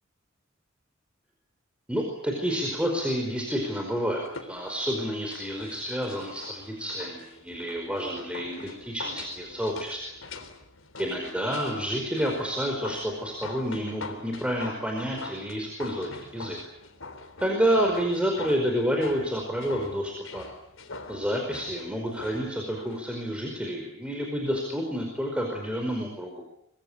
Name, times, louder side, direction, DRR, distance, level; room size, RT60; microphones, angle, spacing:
voice 1, 1.9-10.0 11.0-16.6 17.4-20.5 21.1-26.4, equal, 5° right, 1 dB, 4.9 m, -29 dB
sound 1, 4.2-23.0 23.3-23.4, left 3 dB, 75° left, 3.7 m, -44 dB
25.0 x 23.5 x 8.7 m, 0.76 s
head